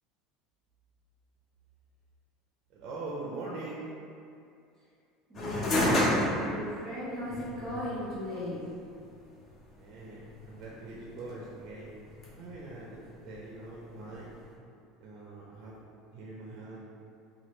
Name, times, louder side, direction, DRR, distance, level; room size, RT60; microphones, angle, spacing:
voice 1, 2.7-3.9 9.8-12.0 12.3-14.4 15.0-15.7 16.1-16.9, right 2 dB, 50° right, -4 dB, 0.4 m, -43 dB
sound 1, 5.3-14.5, left 1 dB, 30° left, 0.5 m, -34 dB
voice 2, 5.3-8.7, left 1 dB, 10° right, -11 dB, 0.9 m, -36 dB
3.0 x 2.2 x 3.0 m, 2.5 s
cardioid pair, 155°, 0 cm